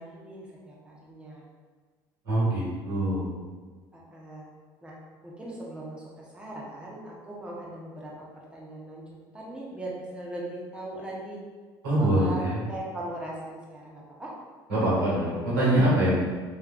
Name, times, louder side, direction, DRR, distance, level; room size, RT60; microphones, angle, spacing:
voice 1, 0.0-1.4 3.9-4.4 4.8-5.0 5.2-11.4 12.0-12.4 12.7-14.3, right 1 dB, 10° right, -5 dB, 0.9 m, -40 dB
voice 2, 2.2-3.3 11.8-12.6 14.7-16.1, right 1 dB, 85° right, -7 dB, 1.3 m, -24 dB
3.3 x 3.0 x 2.3 m, 1.4 s
hypercardioid pair, 65°, 11 cm